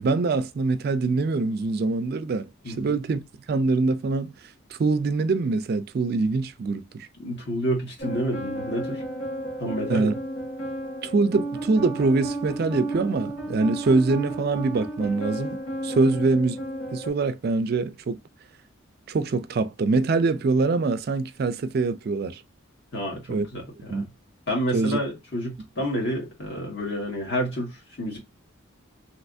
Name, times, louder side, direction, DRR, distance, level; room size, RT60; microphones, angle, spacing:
voice 1, 0.0-3.2 3.5-7.1 9.9-10.1 11.0-16.6 16.9-18.2 19.1-22.4 23.3-23.5 23.9-24.1 24.7-25.0, right 3 dB, 45° right, 0.3 m, -24 dB
voice 2, 7.2-9.0 9.6-10.1 22.9-24.1 24.5-28.2, equal, 55° left, 1.8 m, -29 dB
sound 1, 8.0-17.1, right 1 dB, 80° left, 1.8 m, -33 dB
3.2 x 2.9 x 2.5 m
head